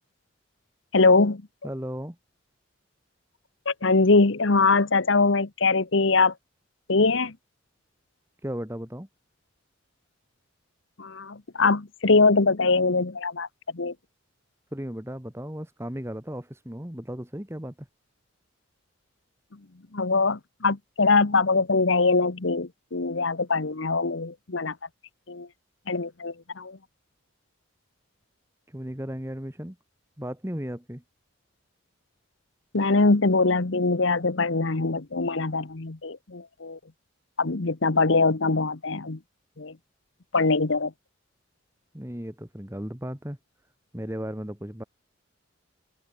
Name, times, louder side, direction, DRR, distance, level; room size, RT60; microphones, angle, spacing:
voice 1, 0.9-1.4 3.7-6.3 6.9-7.3 11.0-13.5 13.7-13.9 19.9-24.7 25.3-25.5 25.9-26.8 32.7-36.8 37.4-39.2 39.6-39.7 40.3-40.9, left 3 dB, 65° left, 1.1 m, -22 dB
voice 2, 1.6-2.2 8.4-9.1 14.7-17.9 28.7-29.8 30.2-31.0 41.9-43.4 43.9-44.8, equal, 10° right, 1.6 m, -35 dB
head